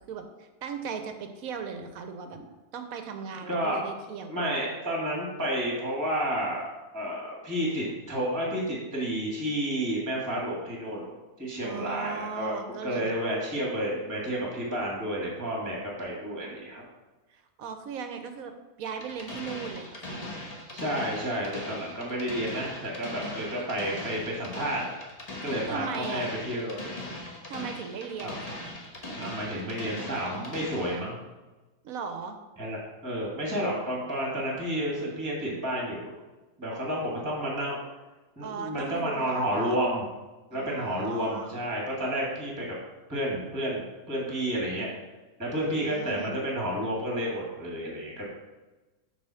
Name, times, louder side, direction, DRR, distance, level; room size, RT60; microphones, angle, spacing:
voice 1, 0.1-2.4 2.7-4.4 11.6-13.1 17.3-18.5 18.8-20.3 25.7-26.3 27.5-28.6 31.8-32.4 38.4-39.8 40.5-41.6 45.7-46.4, right 6 dB, 70° right, 7 dB, 1.0 m, -38 dB
voice 2, 3.5-3.8 4.3-11.1 11.4-12.6 12.8-16.8 20.7-24.9 25.4-26.8 28.2-28.3 29.2-31.2 32.6-36.1 36.6-37.8 38.4-40.0 40.5-42.7 43.1-44.9 45.4-48.2, equal, 10° right, -3 dB, 1.5 m, -31 dB
sound 1, 19.0-31.0, left 1 dB, 30° left, 1.0 m, -39 dB
6.9 x 3.4 x 5.6 m, 1.1 s
omnidirectional pair, 1.7 m